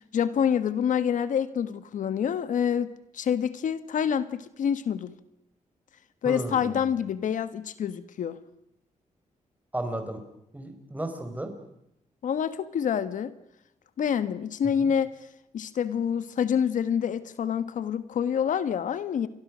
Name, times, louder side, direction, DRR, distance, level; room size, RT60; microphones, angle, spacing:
voice 1, 0.0-5.1 6.2-8.4 12.2-13.3 14.0-15.1 15.5-19.3, left 8 dB, 75° left, 13 dB, 1.4 m, -27 dB
voice 2, 6.2-6.8 9.7-10.2 10.5-11.5 14.8-14.9, right 1 dB, 10° right, 6 dB, 5.1 m, -34 dB
29.5 x 24.0 x 6.3 m, 0.78 s
wide cardioid pair, 125°, 13 cm